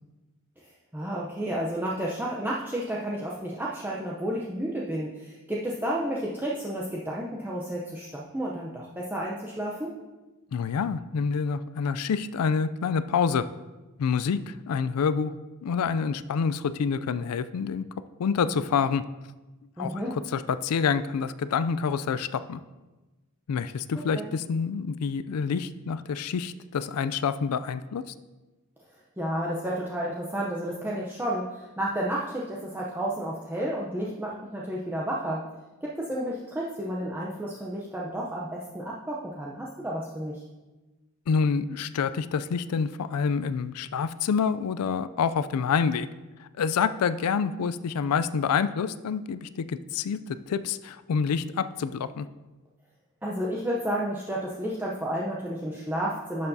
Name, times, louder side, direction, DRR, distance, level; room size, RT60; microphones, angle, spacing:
voice 1, 0.9-10.0 19.8-20.2 24.1-24.2 29.2-35.4 35.8-40.4 53.2-56.5, right 1 dB, 10° right, -5 dB, 0.6 m, -31 dB
voice 2, 10.5-13.4 14.0-15.3 15.6-17.8 18.2-19.0 19.8-20.0 20.3-22.6 23.5-28.0 41.3-46.1 46.4-52.3, left 6 dB, 80° left, 14 dB, 0.4 m, -27 dB
11.0 x 6.8 x 2.7 m, 1.2 s
head